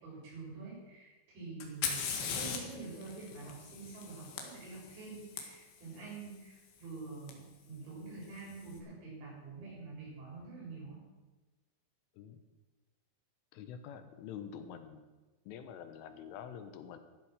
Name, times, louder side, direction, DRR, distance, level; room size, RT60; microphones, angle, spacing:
voice 1, 0.0-11.0, right 3 dB, 65° right, -6 dB, 9.3 m, -47 dB
Fire, 1.6-5.4 7.3-7.4 8.2-8.6, left 6 dB, 70° left, 3.9 m, -39 dB
voice 2, 13.5-15.1 15.5-17.0, left 8 dB, 90° left, 9 dB, 3.7 m, -46 dB
14.5 x 12.0 x 6.5 m, 1.2 s
omnidirectional pair, 5.5 m